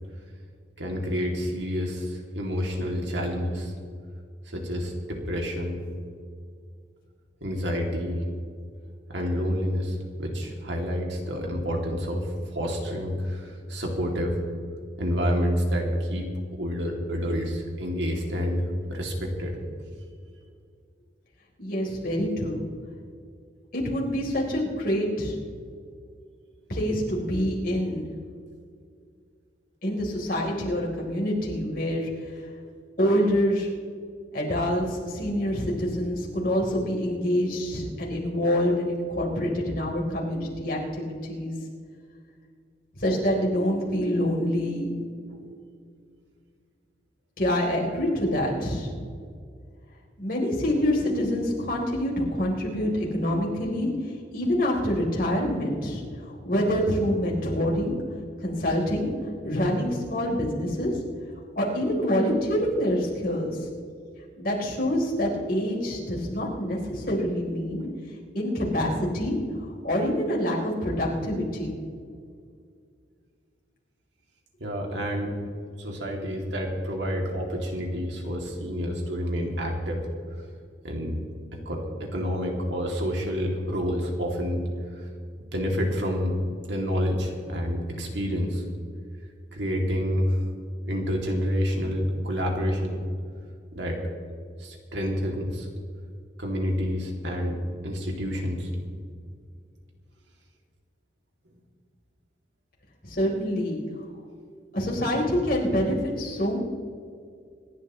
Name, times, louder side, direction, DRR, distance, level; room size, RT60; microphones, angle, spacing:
voice 1, 0.8-3.7 4.5-5.8 7.4-8.2 9.1-12.3 12.5-14.3 15.0-19.5 45.3-45.4 74.6-75.3 75.8-80.0 80.8-81.2 81.7-84.6 85.5-86.3 86.6-88.6 89.5-90.4 90.8-93.0 93.7-94.0 94.6-95.7 96.4-97.6 97.8-98.7, equal, 80° right, 0 dB, 2.8 m, -28 dB
voice 2, 21.6-22.6 23.7-25.4 26.7-28.1 29.8-32.1 33.0-33.7 34.3-41.5 43.0-44.9 47.4-48.9 50.2-53.9 54.3-57.9 58.4-59.1 59.4-61.0 61.6-63.6 64.4-67.8 68.3-71.8 103.0-103.8 104.7-106.6, equal, 50° left, -3 dB, 3.9 m, -26 dB
26.5 x 11.5 x 3.2 m, 2.2 s
head